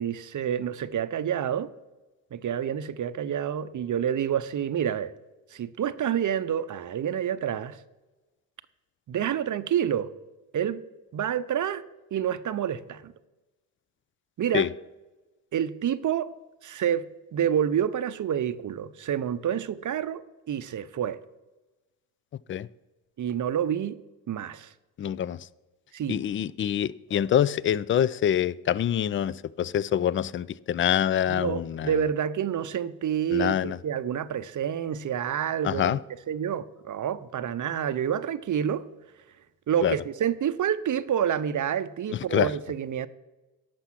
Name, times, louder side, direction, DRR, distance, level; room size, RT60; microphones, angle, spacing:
voice 1, 0.0-1.7 2.3-5.1 5.5-7.8 9.1-10.1 10.5-10.8 11.1-11.8 12.1-13.1 14.4-14.7 15.5-16.3 16.6-21.2 23.2-24.0 24.3-24.7 25.9-26.2 31.3-36.0 36.3-38.8 39.7-43.1, right 9 dB, 40° right, 0.7 m, -28 dB
voice 2, 25.0-25.4 26.1-31.9 33.3-33.8 35.6-36.0 39.8-40.0 42.3-42.5, left 10 dB, 30° left, 0.3 m, -25 dB
11.5 x 6.9 x 5.9 m
hypercardioid pair, 55°, 48 cm